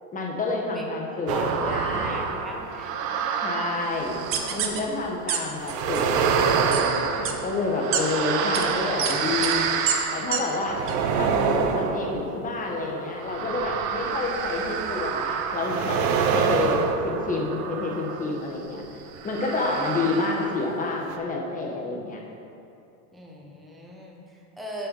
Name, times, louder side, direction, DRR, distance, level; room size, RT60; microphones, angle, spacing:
voice 1, 0.1-2.3 3.4-4.2 4.5-9.7 10.1-10.8 11.1-16.0 16.3-18.8 19.2-22.2, left 3 dB, 15° left, 0 dB, 1.1 m, -29 dB
voice 2, 1.3-3.3 23.1-24.9, equal, ahead, -2 dB, 0.3 m, -39 dB
sound 1, 1.3-4.9 5.6-18.4 19.2-20.8 21.1-21.2, right 6 dB, 80° right, 0.9 m, -27 dB
sound 2, 4.3-4.8 5.3-5.4 5.7-6.0 6.7-6.8 7.2-7.3 7.9-8.0 8.5-8.6 9.0-9.1 9.4-9.5 9.9-10.0 10.3-10.4 10.9-11.0, right 9 dB, 30° right, 0.6 m, -26 dB
8.0 x 5.8 x 5.3 m, 2.7 s
supercardioid pair, 140°, 48 cm